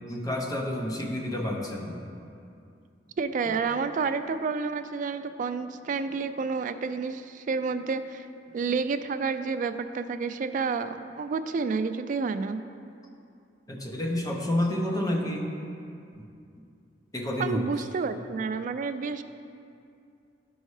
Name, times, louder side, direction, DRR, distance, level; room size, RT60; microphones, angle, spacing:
voice 1, 0.1-2.0 13.7-15.5 17.1-17.6, left 1 dB, 20° left, 0 dB, 0.8 m, -29 dB
voice 2, 3.2-8.3 8.5-12.6 17.4-19.2, right 4 dB, 45° right, 10 dB, 0.3 m, -30 dB
10.5 x 5.4 x 3.2 m, 2.5 s
head